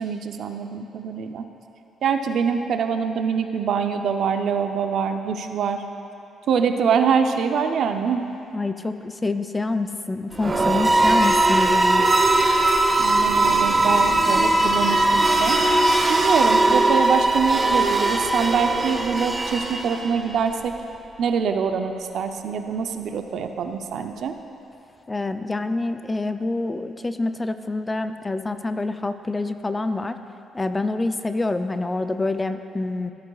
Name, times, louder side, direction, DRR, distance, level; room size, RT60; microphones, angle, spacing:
voice 1, 0.0-1.4 2.0-5.8 6.5-8.2 13.0-15.6 16.1-20.7 21.2-24.3, right 6 dB, 70° right, 6 dB, 0.5 m, -24 dB
voice 2, 8.5-12.1 25.1-30.2 30.5-33.1, left 2 dB, 20° left, 9 dB, 0.4 m, -26 dB
sound 1, 10.3-20.3, right 2 dB, 25° right, 0.7 m, -19 dB
14.5 x 8.6 x 2.3 m, 2.8 s
cardioid pair, 90°, 0 cm